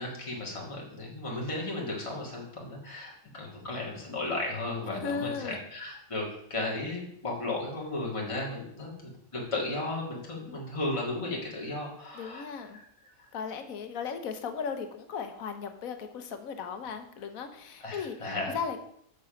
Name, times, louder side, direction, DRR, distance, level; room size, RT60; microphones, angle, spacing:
voice 1, 0.0-6.2 6.5-8.9 9.3-12.5 12.7-12.8 13.2-13.3 17.8-18.5, left 2 dB, 25° left, -3 dB, 1.9 m, -35 dB
voice 2, 5.0-5.6 8.8-8.9 10.5-10.6 12.1-12.8 13.3-18.2 18.5-18.8, left 6 dB, 80° left, 7 dB, 1.4 m, -36 dB
6.9 x 6.8 x 5.1 m, 0.71 s
omnidirectional pair, 1.4 m